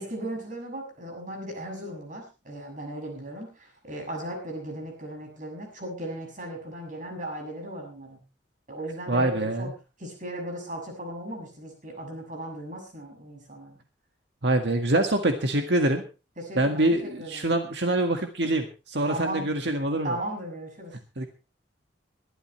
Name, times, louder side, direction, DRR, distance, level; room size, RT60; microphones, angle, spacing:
voice 1, 0.0-8.2 8.7-9.7 10.0-13.8 16.4-17.5 19.1-19.5 20.0-20.9, right 1 dB, 40° right, 2 dB, 6.8 m, -37 dB
voice 2, 9.1-9.7 14.4-16.0 16.6-20.2 21.2-21.3, right 1 dB, 65° right, 5 dB, 1.8 m, -25 dB
22.5 x 12.5 x 3.2 m, 0.32 s
head